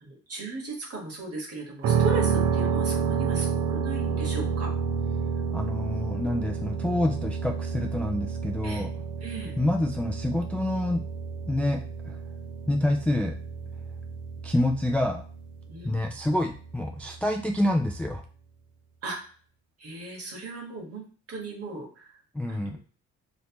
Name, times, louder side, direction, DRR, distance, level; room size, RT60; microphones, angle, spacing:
voice 1, 0.0-4.7 8.6-8.9 9.2-9.6 15.7-15.9 19.0-19.2 19.8-22.2 22.5-22.8, right 2 dB, 50° right, -1 dB, 1.5 m, -37 dB
sound 1, 1.8-17.7, right 6 dB, 80° right, 0.6 m, -30 dB
voice 2, 5.5-8.9 9.6-11.0 11.5-12.2 12.7-13.3 14.4-15.2 15.8-18.2 22.3-22.8, left 1 dB, 5° left, 2 dB, 0.3 m, -27 dB
3.2 x 2.8 x 2.9 m, 0.41 s
cardioid pair, 90°, 30 cm